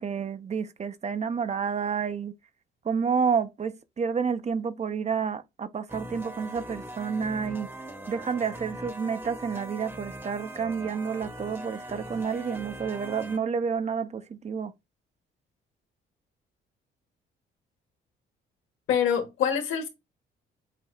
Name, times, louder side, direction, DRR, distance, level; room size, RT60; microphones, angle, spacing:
voice 1, 0.0-2.3 2.8-7.7 8.1-14.7, right 6 dB, 35° right, 0.6 m, -29 dB
sound 1, 5.9-13.4, right 1 dB, 10° right, 0.9 m, -41 dB
voice 2, 18.9-19.9, left 8 dB, 90° left, 1.5 m, -25 dB
7.6 x 2.7 x 2.3 m
cardioid pair, 90°, 20 cm